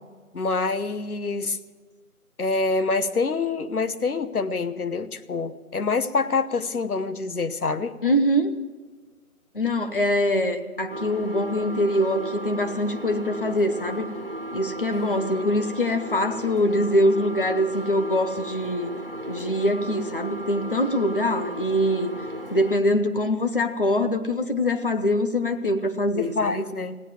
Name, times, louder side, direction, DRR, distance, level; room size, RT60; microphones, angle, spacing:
voice 1, 0.3-1.6 2.4-8.0 14.9-15.5 26.2-27.0, left 4 dB, 75° left, 11 dB, 1.1 m, -26 dB
voice 2, 8.0-8.6 9.5-14.1 14.5-18.9 19.3-22.1 22.5-26.6, left 1 dB, 35° left, 8 dB, 0.9 m, -23 dB
sound 1, 10.9-22.8, right 1 dB, 40° right, 0.4 m, -35 dB
16.5 x 9.5 x 9.0 m, 1.4 s
figure-of-eight pair, 165°, 45 cm